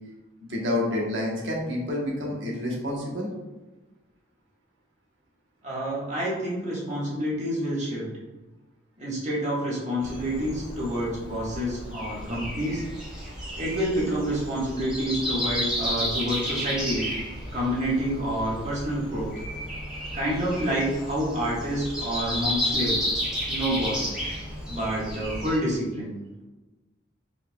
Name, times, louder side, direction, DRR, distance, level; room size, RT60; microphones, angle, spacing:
voice 1, 0.4-3.3, left 1 dB, 75° right, -2 dB, 1.1 m, -28 dB
voice 2, 5.6-8.1 9.0-12.8 13.6-17.1 17.5-19.3 20.1-23.0 23.5-24.1 24.7-26.1, equal, 40° right, -6 dB, 1.3 m, -28 dB
Breathing, 10.0-25.6, equal, 5° right, 1.1 m, -32 dB
4.3 x 4.2 x 2.3 m, 1.1 s
head